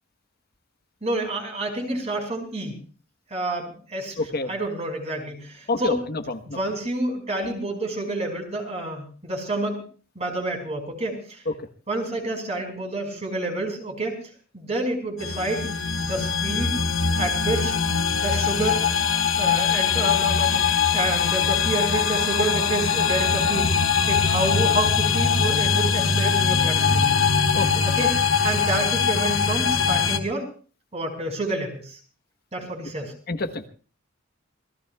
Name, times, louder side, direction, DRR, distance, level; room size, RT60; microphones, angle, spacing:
voice 1, 1.0-2.7 3.3-4.2 4.5-6.0 6.5-9.9 10.2-11.4 11.9-14.2 14.5-15.7 16.0-16.8 17.2-17.7 18.1-18.8 19.4-20.6 20.9-23.7 24.1-27.1 27.8-28.1 28.4-30.4 30.9-32.0 32.5-33.1, right 2 dB, 35° right, 3 dB, 5.1 m, -28 dB
voice 2, 4.2-4.5 5.7-6.6 11.5-11.6 27.5-27.8 33.3-33.6, left 2 dB, 50° left, 7 dB, 1.2 m, -28 dB
sound 1, 15.2-30.2, left 6 dB, 75° left, 1.6 m, -22 dB
26.5 x 19.0 x 2.4 m, 0.41 s
head